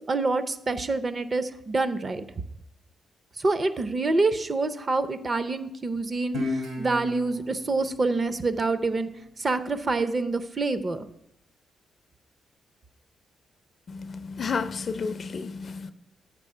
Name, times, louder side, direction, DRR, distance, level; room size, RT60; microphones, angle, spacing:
voice 1, 0.1-2.2 3.4-9.1 9.4-11.1, right 3 dB, 30° right, 0.5 m, -26 dB
Guitar, 6.3-9.5, left 2 dB, 75° right, 3.0 m, -35 dB
voice 2, 13.9-15.9, left 5 dB, 45° left, 0.4 m, -31 dB
7.4 x 4.3 x 6.6 m
cardioid pair, 120°, 0 cm